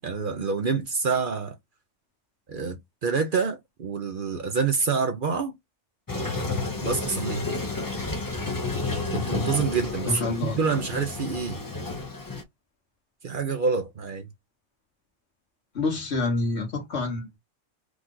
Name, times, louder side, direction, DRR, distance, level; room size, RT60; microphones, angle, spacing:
voice 1, 0.0-1.5 2.5-5.5 6.8-7.5 9.1-11.6 13.2-14.3, right 5 dB, 50° right, 0.7 m, -27 dB
Toilet flush, 6.1-12.4, left 3 dB, 25° left, 0.5 m, -31 dB
voice 2, 10.1-10.6 15.7-17.4, left 2 dB, 65° left, 1.7 m, -27 dB
4.9 x 2.4 x 3.8 m
omnidirectional pair, 1.2 m